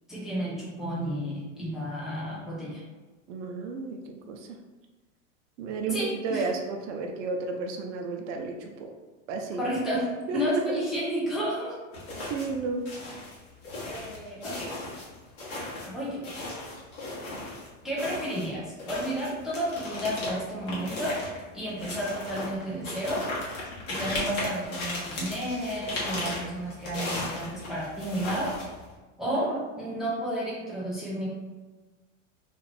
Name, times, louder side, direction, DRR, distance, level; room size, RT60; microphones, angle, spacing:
voice 1, 0.1-2.8 5.9-6.5 9.6-11.7 13.8-14.7 15.9-16.3 17.8-21.1 21.5-23.3 23.9-28.5 29.2-31.3, equal, ahead, -7 dB, 0.5 m, -31 dB
voice 2, 3.3-4.5 5.6-8.9 9.3-9.6 10.3-10.8 12.3-12.9 29.3-29.6, right 3 dB, 65° right, 3 dB, 0.6 m, -32 dB
sound 1, 11.9-12.6 12.9-17.7 18.0-28.9, left 2 dB, 35° left, 1.0 m, -36 dB
2.5 x 2.4 x 3.2 m, 1.3 s
supercardioid pair, 135°, 40 cm